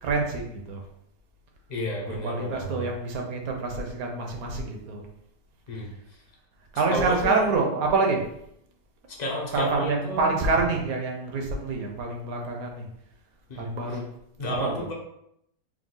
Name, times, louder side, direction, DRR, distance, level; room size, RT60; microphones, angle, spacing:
voice 1, 0.0-0.8 2.1-5.0 6.7-8.2 9.5-12.9 13.6-14.0 14.6-14.7, right 3 dB, 65° right, 1 dB, 1.2 m, -26 dB
voice 2, 1.7-2.9 5.7-5.9 6.9-7.4 9.1-10.4 13.5-14.0 14.4-14.9, left 1 dB, 40° left, -1 dB, 0.6 m, -31 dB
4.7 x 2.2 x 3.8 m, 0.76 s
omnidirectional pair, 1.8 m